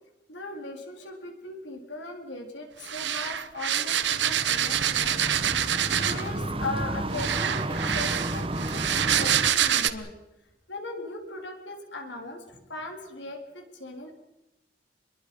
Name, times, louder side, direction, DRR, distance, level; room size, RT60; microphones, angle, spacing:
voice 1, 0.3-10.1 10.7-14.2, left 2 dB, 90° left, 3 dB, 4.1 m, -39 dB
sound 1, 2.8-6.3 7.1-9.9, right 9 dB, 85° right, 1.1 m, -26 dB
sound 2, 4.1-9.5, right 1 dB, 30° right, 1.2 m, -32 dB
27.0 x 22.0 x 5.6 m, 0.93 s
head